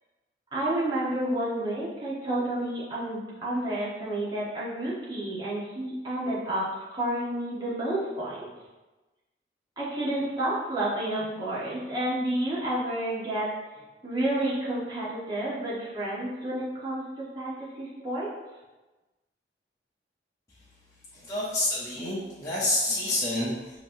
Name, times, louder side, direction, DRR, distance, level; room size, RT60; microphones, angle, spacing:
voice 1, 0.5-6.6 6.9-8.5 9.8-13.5 13.8-18.3, right 1 dB, 25° right, -8 dB, 1.1 m, -30 dB
voice 2, 21.1-23.8, left 1 dB, 20° left, -10 dB, 0.7 m, -28 dB
5.5 x 2.9 x 2.6 m, 1.1 s
head